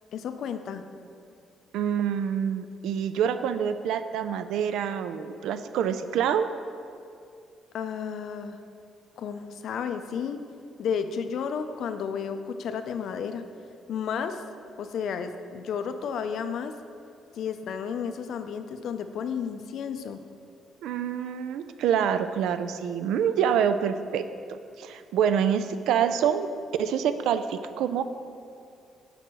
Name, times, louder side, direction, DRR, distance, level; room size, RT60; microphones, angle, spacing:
voice 1, 0.1-0.8 7.7-8.6 9.2-10.4 10.8-13.4 13.9-14.4 14.8-16.7 17.4-20.2, left 7 dB, 60° left, 9 dB, 0.4 m, -32 dB
voice 2, 1.7-6.5 20.8-24.2 24.5-26.5 26.8-28.0, right 8 dB, 85° right, 11 dB, 0.3 m, -26 dB
5.2 x 4.5 x 6.0 m, 2.5 s
cardioid pair, 165°, 0 cm